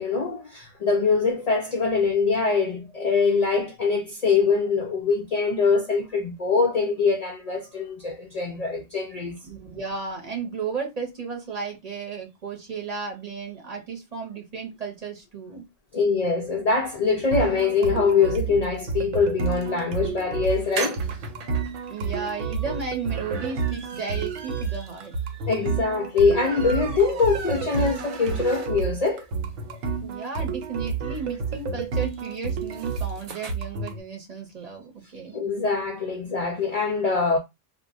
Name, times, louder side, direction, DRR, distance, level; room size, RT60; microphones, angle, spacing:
voice 1, 0.0-9.4 15.9-21.6 25.5-29.2 29.7-29.8 35.3-37.4, left 4 dB, 80° left, 0.3 m, -23 dB
voice 2, 9.4-15.6 21.9-25.4 30.0-35.4, right 5 dB, 40° right, 0.7 m, -34 dB
sound 1, 17.3-34.0, right 5 dB, 85° right, 0.9 m, -30 dB
sound 2, 20.5-29.1 29.5-29.6 29.8-29.9 30.1-33.5, right 4 dB, 70° right, 0.3 m, -39 dB
2.1 x 2.1 x 3.5 m
omnidirectional pair, 1.2 m